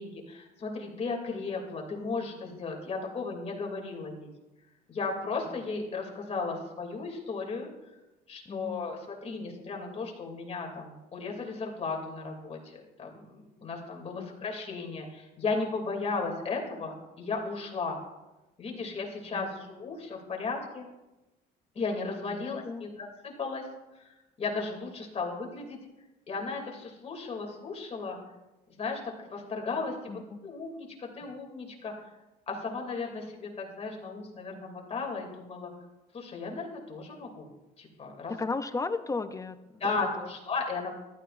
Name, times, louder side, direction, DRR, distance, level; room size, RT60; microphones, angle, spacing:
voice 1, 0.0-4.3 4.9-7.7 8.3-18.0 18.6-20.8 21.7-23.7 24.0-25.8 26.3-28.2 28.8-31.9 32.5-35.7 36.1-37.5 37.8-38.3 39.8-40.9, left 4 dB, 40° left, 1 dB, 2.7 m, -35 dB
voice 2, 8.5-8.9 14.2-14.3 19.3-19.7 22.3-22.9 30.1-30.4 38.3-39.6 39.8-40.3, left 3 dB, 20° left, 11 dB, 0.5 m, -35 dB
14.5 x 12.0 x 2.6 m, 1.0 s
cardioid pair, 110°, 17 cm